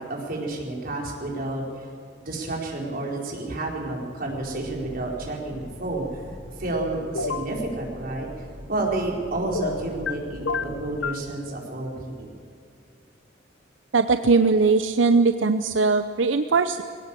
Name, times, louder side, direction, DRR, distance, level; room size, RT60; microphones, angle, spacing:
voice 1, 0.0-1.9 2.2-6.0 6.6-8.3 8.7-12.3, right 2 dB, 50° right, -1 dB, 4.7 m, -30 dB
sound 1, 4.3-11.0, equal, 70° right, 5.8 m, -43 dB
sound 2, 7.1-7.5 9.5-10.1 10.5-11.2, left 5 dB, 75° left, 0.8 m, -29 dB
voice 2, 13.9-16.8, right 4 dB, 85° right, 9 dB, 0.7 m, -20 dB
21.0 x 17.5 x 7.5 m, 2.4 s
head